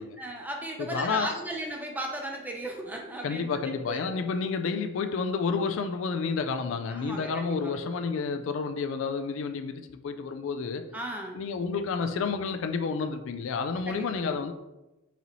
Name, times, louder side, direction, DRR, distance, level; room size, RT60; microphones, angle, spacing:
voice 1, 0.0-3.5 3.9-4.1 6.9-7.8 10.9-11.4 13.9-14.4, right 1 dB, 10° right, 0.5 m, -36 dB
voice 2, 0.8-1.3 3.2-10.9 11.3-14.5, left 5 dB, 65° left, 0.3 m, -30 dB
4.1 x 4.0 x 3.0 m
head